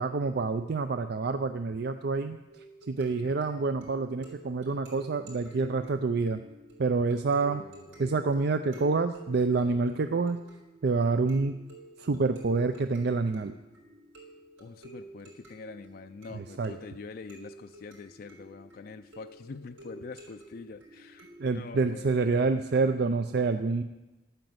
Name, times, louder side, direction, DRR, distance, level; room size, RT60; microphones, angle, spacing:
voice 1, 0.0-6.4 6.8-7.6 8.0-10.4 10.8-11.6 12.0-13.6 16.3-16.7 21.4-23.8, right 4 dB, 55° right, 9 dB, 0.5 m, -27 dB
sound 1, 2.5-21.7, right 2 dB, 80° right, 4.7 m, -51 dB
voice 2, 7.5-8.1 14.6-21.3 21.5-22.5, left 4 dB, 50° left, 7 dB, 0.4 m, -45 dB
12.0 x 9.0 x 7.9 m, 1.1 s
head